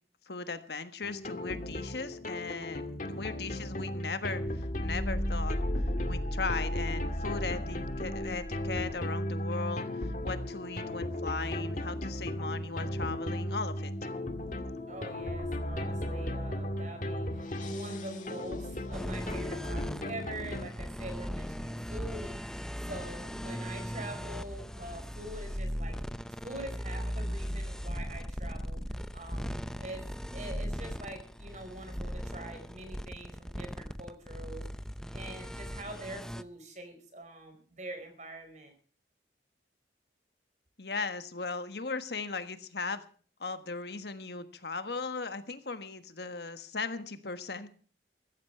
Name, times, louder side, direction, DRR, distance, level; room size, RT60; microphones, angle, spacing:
voice 1, 0.3-5.6 6.1-13.9 40.8-43.0 43.4-47.7, left 4 dB, 65° left, 10 dB, 1.4 m, -37 dB
sound 1, 1.0-20.7, left 1 dB, 45° left, 1.9 m, -35 dB
voice 2, 14.9-26.0 26.4-30.0 30.3-34.7 35.1-38.7, right 1 dB, 40° right, 7 dB, 4.6 m, -44 dB
sound 2, 18.9-36.4, equal, 5° left, 0.6 m, -38 dB
15.0 x 15.0 x 4.5 m, 0.42 s
head